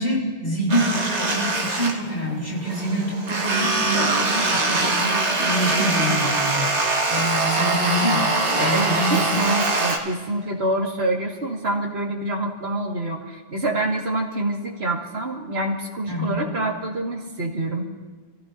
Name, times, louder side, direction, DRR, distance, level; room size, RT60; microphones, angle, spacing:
voice 1, 0.0-6.7 7.1-9.2 16.1-16.4, right 1 dB, 55° left, -3 dB, 4.1 m, -26 dB
sound 1, 0.7-2.3 2.6-10.0, right 2 dB, 85° right, 1.9 m, -23 dB
voice 2, 8.6-17.8, right 1 dB, 70° right, -1 dB, 2.2 m, -26 dB
28.0 x 15.0 x 2.7 m, 1.3 s
omnidirectional pair, 1.1 m